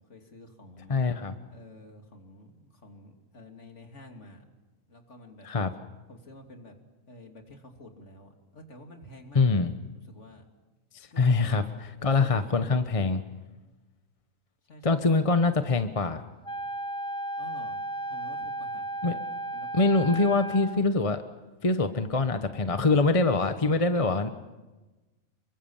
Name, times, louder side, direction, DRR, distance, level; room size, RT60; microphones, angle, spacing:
voice 1, 0.0-1.0 1.5-4.4 4.9-5.5 6.1-6.7 7.1-10.4 11.1-11.6 12.0-12.8 13.1-13.4 14.7-15.1 17.4-17.8 18.1-19.2 19.5-20.6, left 1 dB, 60° left, 3 dB, 3.3 m, -50 dB
voice 2, 0.9-1.4 5.4-5.7 9.3-9.7 10.9-13.2 14.8-16.2 19.0-19.1 19.7-21.2 21.6-24.3, left 3 dB, 25° left, 9 dB, 1.0 m, -24 dB
Wind instrument woodwind instrument, 16.4-20.9, right 2 dB, 5° left, 0.5 m, -34 dB
28.5 x 23.0 x 7.3 m, 1.1 s
omnidirectional pair, 1.4 m